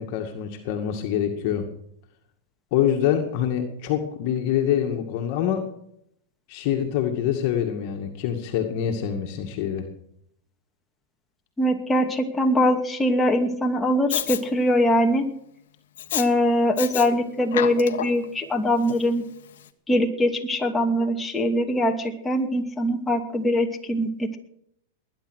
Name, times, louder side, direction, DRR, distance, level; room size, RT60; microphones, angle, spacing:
voice 1, 0.0-1.6 2.7-5.6 6.5-9.9, left 9 dB, 55° left, 3 dB, 2.2 m, -25 dB
voice 2, 11.6-15.3 16.1-19.2 19.9-24.4, equal, 10° left, 2 dB, 2.4 m, -22 dB
Respiratory sounds, 14.1-14.4 16.0-16.3 16.8-17.1 17.4-18.2 18.9-19.0, left 11 dB, 75° left, 1.3 m, -28 dB
20.0 x 10.5 x 6.5 m, 0.73 s
hypercardioid pair, 115°, 0 cm